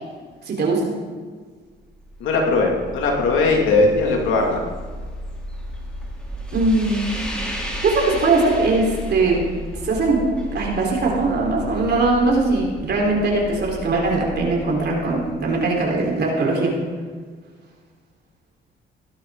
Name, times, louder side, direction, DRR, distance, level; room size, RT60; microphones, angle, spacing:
voice 1, 0.5-0.9 6.5-7.1 7.8-9.4 9.8-10.2 10.5-16.8, right 3 dB, 55° right, -2 dB, 4.4 m, -20 dB
sound 1, 1.8-16.0, equal, 5° left, 3.5 m, -34 dB
voice 2, 2.2-4.6, left 3 dB, 90° left, 0 dB, 2.5 m, -19 dB
17.5 x 11.5 x 4.0 m, 1.5 s
cardioid pair, 90°, 20 cm